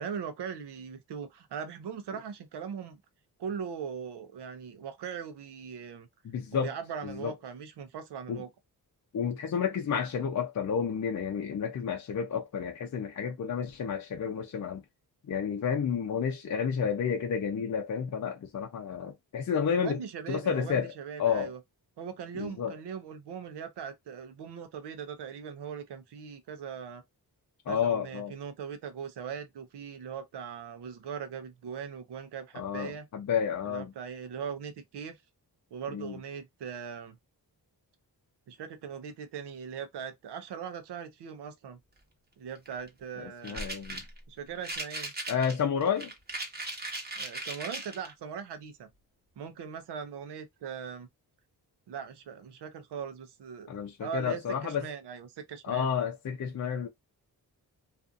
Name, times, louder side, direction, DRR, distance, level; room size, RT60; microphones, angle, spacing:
voice 1, 0.0-3.0 3.4-6.1 6.6-8.5 19.8-21.6 22.0-27.0 27.7-33.1 33.7-35.2 35.7-37.2 38.5-41.8 42.4-43.6 44.3-45.1 47.2-48.9 49.4-51.1 51.9-53.7 54.0-55.9, right 7 dB, 85° right, 0.7 m, -40 dB
voice 2, 6.2-6.7 7.0-7.3 8.3-8.4 9.1-14.8 15.3-20.0 20.3-20.9 21.2-21.5 22.3-22.7 27.7-28.3 32.5-33.9 35.9-36.2 43.2-44.0 45.3-46.1 53.7-54.9 55.6-56.9, left 7 dB, 45° left, 0.5 m, -31 dB
sound 1, 42.5-42.9 43.4-44.2 44.6-48.1, right 2 dB, 25° right, 0.9 m, -38 dB
2.5 x 2.5 x 2.5 m
cardioid pair, 95°, 39 cm